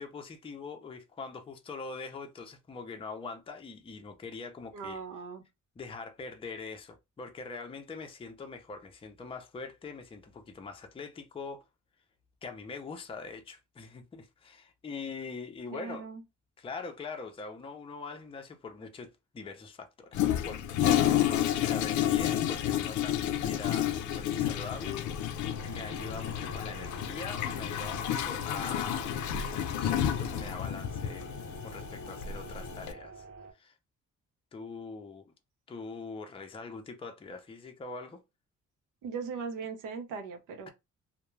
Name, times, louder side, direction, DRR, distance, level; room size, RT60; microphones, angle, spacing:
voice 1, 0.0-5.0 5.8-11.7 12.4-16.1 16.6-29.1 29.8-31.3 31.6-33.2 33.5-33.7 34.5-35.3 35.7-38.2, left 4 dB, 20° left, 0.5 m, -43 dB
voice 2, 4.7-5.4 15.7-16.2 39.0-40.7, right 5 dB, 85° right, 0.7 m, -39 dB
Toilet flush, 20.1-32.9, left 10 dB, 75° left, 0.4 m, -30 dB
sound 1, 25.5-33.5, right 4 dB, 55° right, 1.0 m, -49 dB
2.2 x 2.1 x 3.1 m
cardioid pair, 90°, 30 cm